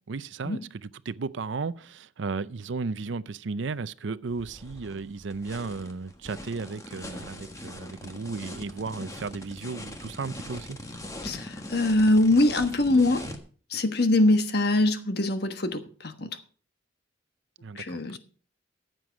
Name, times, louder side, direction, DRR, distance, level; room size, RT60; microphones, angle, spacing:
voice 1, 0.1-10.8 17.6-18.2, right 4 dB, 75° right, 0.5 m, -34 dB
sound 1, 4.3-13.4, left 1 dB, 15° left, 1.4 m, -41 dB
voice 2, 11.2-13.2 13.7-16.4 17.7-18.2, left 2 dB, 55° left, 1.3 m, -23 dB
14.5 x 7.7 x 5.2 m
head